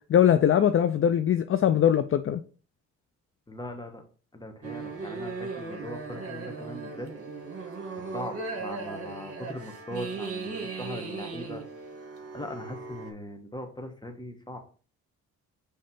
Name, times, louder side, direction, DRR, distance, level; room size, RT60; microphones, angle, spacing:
voice 1, 0.1-2.4, left 9 dB, 45° left, 0.5 m, -21 dB
voice 2, 3.5-4.0 4.3-7.1 8.0-11.6 12.3-14.6, left 1 dB, 15° left, 1.4 m, -40 dB
sound 1, 4.6-13.1, right 4 dB, 50° right, 2.1 m, -37 dB
5.4 x 3.3 x 5.6 m
cardioid pair, 80°, 31 cm